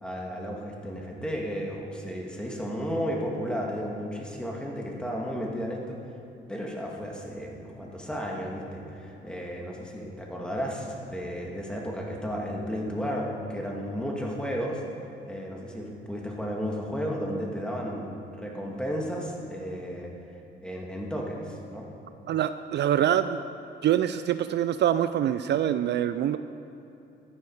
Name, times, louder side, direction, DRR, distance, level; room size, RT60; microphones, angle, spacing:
voice 1, 0.0-6.0 6.5-14.8 15.2-20.1 20.6-21.9, equal, 5° left, -1 dB, 2.1 m, -33 dB
voice 2, 22.3-23.4 23.8-26.4, right 10 dB, 60° right, 11 dB, 0.4 m, -25 dB
13.5 x 9.6 x 4.7 m, 2.9 s
cardioid pair, 90°, 20 cm